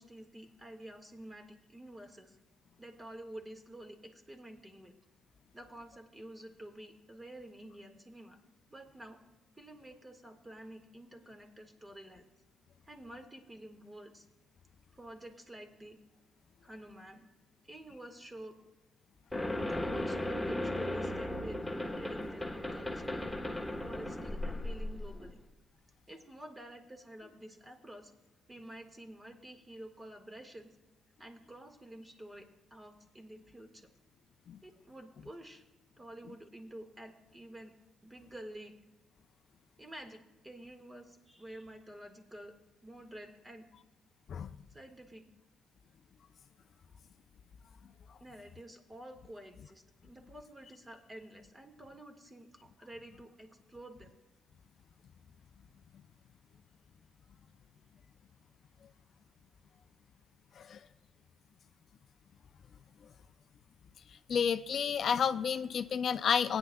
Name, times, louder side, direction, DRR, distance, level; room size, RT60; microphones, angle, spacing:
voice 1, 0.0-2.4 2.8-4.9 5.5-8.4 8.7-9.2 9.6-12.3 12.8-14.3 14.9-16.0 16.6-17.3 17.6-18.6 19.8-23.1 23.8-25.4 26.1-28.1 28.5-30.7 31.2-33.9 34.6-35.6 36.0-37.7 38.0-38.8 39.8-42.5 42.8-43.7 44.7-45.3 48.2-54.2, right 1 dB, 15° right, 5 dB, 1.7 m, -50 dB
sound 1, 19.3-25.3, left 1 dB, 5° left, 1.2 m, -36 dB
voice 2, 64.3-66.6, left 7 dB, 60° left, 12 dB, 0.4 m, -30 dB
17.5 x 9.7 x 2.3 m, 1.1 s
cardioid pair, 90°, 0 cm